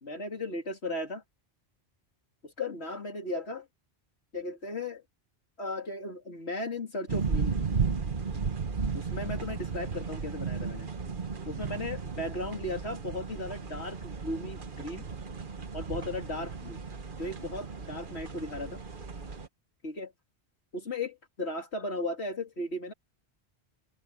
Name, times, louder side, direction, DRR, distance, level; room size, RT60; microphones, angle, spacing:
voice 1, 0.0-1.2 2.4-3.7 4.3-5.0 5.6-7.6 8.9-10.9 11.5-15.1 15.7-16.8 17.2-18.8 19.8-20.1 20.7-22.9, left 2 dB, 85° left, 3.3 m, -36 dB
sound 1, 7.1-19.5, right 5 dB, 50° right, 1.5 m, -34 dB
omnidirectional pair, 1.1 m